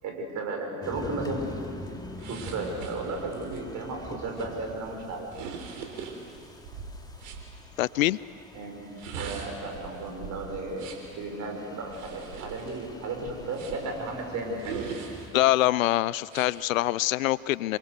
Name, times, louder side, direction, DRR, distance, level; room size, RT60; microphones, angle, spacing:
voice 1, 0.0-1.4 2.3-5.3 8.5-8.8 9.2-14.8, right 3 dB, 40° right, 2 dB, 5.9 m, -34 dB
sound 1, 0.8-15.3, left 2 dB, 10° left, 2.3 m, -45 dB
sound 2, 2.2-7.5 8.8-11.1 11.9-14.0 14.6-15.6 16.3-16.5, right 5 dB, 65° right, 3.7 m, -41 dB
voice 2, 7.8-8.2 15.3-17.8, left 16 dB, 70° left, 21 dB, 0.6 m, -24 dB
27.0 x 23.5 x 6.8 m, 2.5 s
hypercardioid pair, 80°, 42 cm